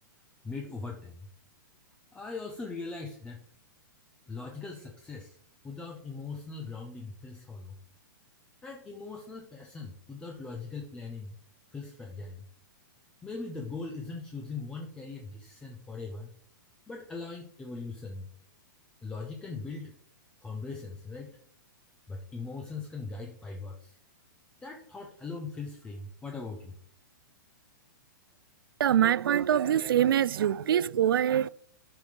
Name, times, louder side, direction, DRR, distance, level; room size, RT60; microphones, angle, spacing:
voice 1, 0.4-1.3 2.1-3.4 4.3-5.4 5.6-7.8 8.6-11.4 11.7-12.4 13.2-16.3 16.9-18.3 19.0-19.9 20.4-21.4 22.1-24.0 24.6-26.8, left 4 dB, 10° left, 0.6 m, -40 dB
voice 2, 28.8-31.5, right 10 dB, 90° right, 0.4 m, -24 dB
12.0 x 5.1 x 3.3 m
hypercardioid pair, 160°, 11 cm